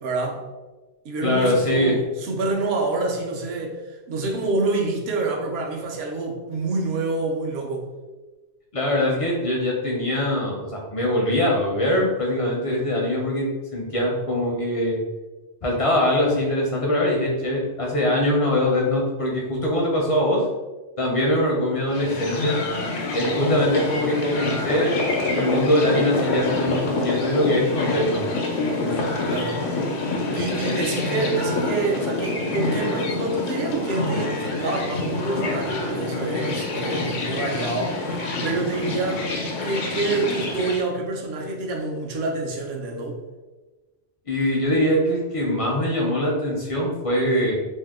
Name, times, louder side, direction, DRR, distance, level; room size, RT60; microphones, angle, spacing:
voice 1, 0.0-0.4 1.0-3.8 4.1-7.9 28.7-29.6 30.3-39.3 39.6-43.2, right 3 dB, 65° right, 0 dB, 0.8 m, -27 dB
voice 2, 1.2-2.0 8.7-13.5 13.7-15.0 15.6-20.4 21.0-22.6 23.1-28.3 44.3-47.5, left 1 dB, 45° left, -2 dB, 0.4 m, -22 dB
sound 1, 21.9-40.8, left 2 dB, 85° left, 0.9 m, -27 dB
2.7 x 2.1 x 3.4 m, 1.2 s
omnidirectional pair, 1.2 m